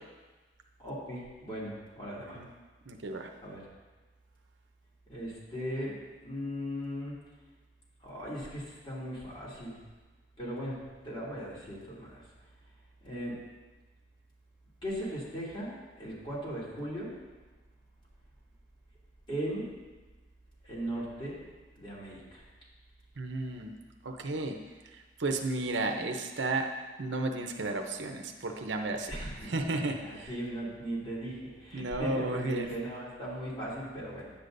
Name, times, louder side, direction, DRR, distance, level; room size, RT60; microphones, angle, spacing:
voice 1, 0.8-2.4 3.4-3.6 5.1-7.2 8.0-9.8 10.4-12.2 13.0-13.4 14.8-17.1 19.3-19.7 20.6-21.4 21.7-22.4 29.1-34.3, equal, 30° left, -7 dB, 2.6 m, -38 dB
voice 2, 2.9-3.3 23.2-23.7 24.0-24.6 25.2-26.7 27.0-30.3 31.7-32.7, right 2 dB, 85° right, 3 dB, 0.7 m, -33 dB
10.0 x 8.1 x 2.6 m, 1.3 s
head